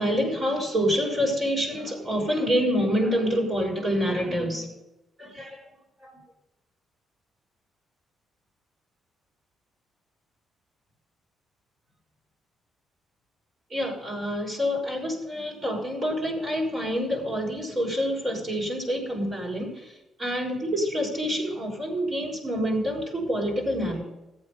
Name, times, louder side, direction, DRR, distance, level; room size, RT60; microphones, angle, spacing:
voice 1, 0.0-4.7 5.2-5.6 6.0-6.2 13.7-19.9 20.2-24.0, equal, 40° right, -2 dB, 5.9 m, -27 dB
14.5 x 8.9 x 5.3 m, 0.95 s
cardioid pair, 90°, 0 cm